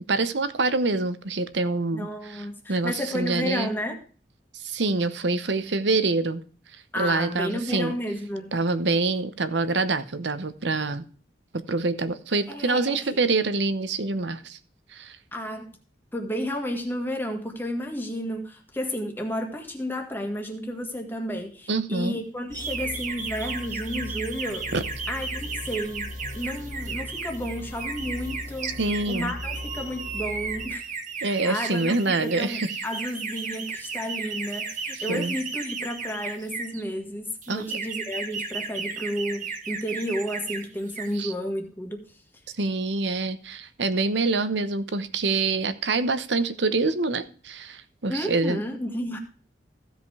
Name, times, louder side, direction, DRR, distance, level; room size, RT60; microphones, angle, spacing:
voice 1, 0.1-3.7 4.5-6.4 7.0-7.9 8.5-11.0 11.5-14.6 14.9-15.2 21.7-22.2 24.7-24.8 28.6-29.3 31.2-32.7 35.1-35.3 37.5-37.6 41.1-41.3 42.6-48.6, right 3 dB, 75° right, 12 dB, 1.0 m, -26 dB
voice 2, 1.9-4.0 6.9-8.5 12.5-13.2 15.3-15.7 16.1-24.7 25.1-26.1 26.3-28.8 29.1-30.9 31.2-42.1 48.1-49.2, equal, 10° left, 3 dB, 1.7 m, -32 dB
sound 1, 22.5-30.7, left 1 dB, 75° left, 2.3 m, -39 dB
sound 2, 22.5-36.8 37.4-40.6 40.9-41.2, right 5 dB, 45° right, 1.5 m, -34 dB
15.0 x 5.2 x 4.8 m, 0.42 s
head